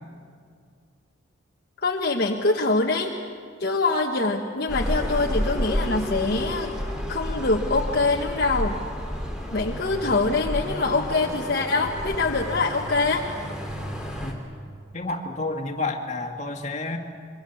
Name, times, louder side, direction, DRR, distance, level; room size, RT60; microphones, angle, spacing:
voice 1, 1.8-3.1 3.6-6.7 7.1-8.8 9.5-13.2, left 3 dB, 50° left, 0 dB, 1.2 m, -24 dB
sound 1, 4.7-14.3, equal, 5° right, 2.9 m, -31 dB
voice 2, 14.9-17.0, left 2 dB, 35° left, 2 dB, 1.9 m, -30 dB
26.5 x 23.5 x 7.1 m, 2.2 s
head